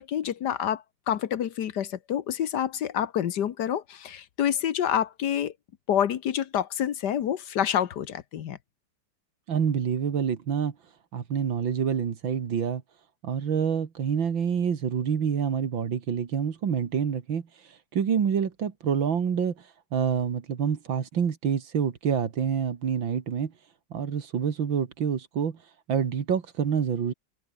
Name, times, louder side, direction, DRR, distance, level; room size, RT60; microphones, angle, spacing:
voice 1, 0.0-5.5 5.9-8.6, left 9 dB, 65° left, 1.5 m, -28 dB
voice 2, 9.5-10.7 11.1-12.8 13.2-17.5 17.9-19.5 19.9-23.5 23.9-25.6 25.9-27.1, right 7 dB, 85° right, 2.6 m, -27 dB
omnidirectional pair, 2.1 m